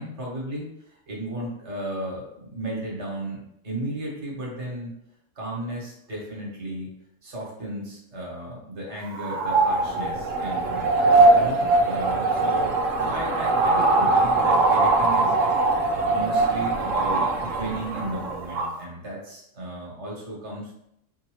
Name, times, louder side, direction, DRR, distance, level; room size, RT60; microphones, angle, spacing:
voice 1, 0.0-4.9 5.3-6.9 7.2-12.7 13.0-15.4 16.1-20.7, right 1 dB, 60° right, -3 dB, 1.6 m, -34 dB
sound 1, 9.0-18.8, right 2 dB, 80° right, 1.1 m, -21 dB
4.7 x 2.6 x 3.1 m, 0.77 s
omnidirectional pair, 1.3 m